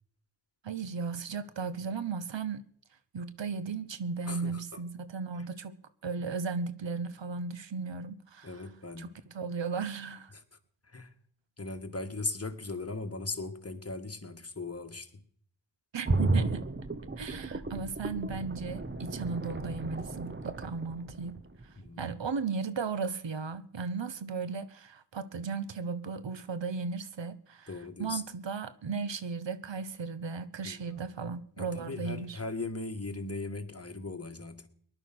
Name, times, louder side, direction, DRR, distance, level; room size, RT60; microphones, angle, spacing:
voice 1, 0.6-2.6 3.1-5.7 6.0-8.5 9.0-9.1 9.3-10.3 15.9-16.7 17.2-21.4 22.0-27.7 28.0-32.4, right 5 dB, 85° right, 1.0 m, -36 dB
voice 2, 4.3-4.8 8.4-9.2 10.3-10.4 10.8-11.1 11.6-15.2 21.8-22.2 27.7-28.2 30.6-31.0 31.6-34.7, left 3 dB, 35° left, 1.7 m, -38 dB
sound 1, 16.0-21.9 22.2-22.3, right 2 dB, 25° right, 1.1 m, -33 dB
19.0 x 11.0 x 6.1 m
wide cardioid pair, 60°, 43 cm